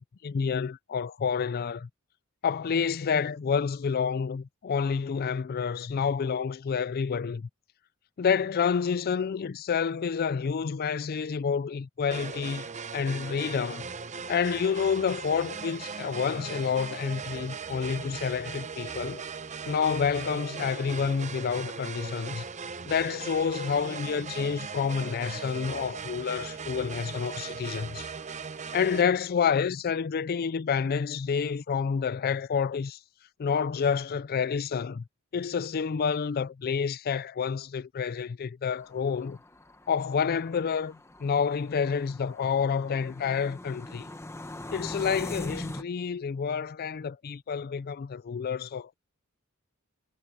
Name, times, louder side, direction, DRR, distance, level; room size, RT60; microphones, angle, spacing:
voice 1, 0.0-1.9 2.4-7.5 8.2-12.7 12.9-13.9 14.3-19.2 19.7-22.4 22.9-28.1 28.7-33.0 33.4-35.0 35.3-39.4 39.9-44.1 44.7-48.9, left 6 dB, 45° left, 0.4 m, -29 dB
sound 1, 12.1-29.0, right 5 dB, 35° right, 0.7 m, -39 dB
sound 2, 38.7-45.8, left 1 dB, 10° left, 1.0 m, -42 dB
head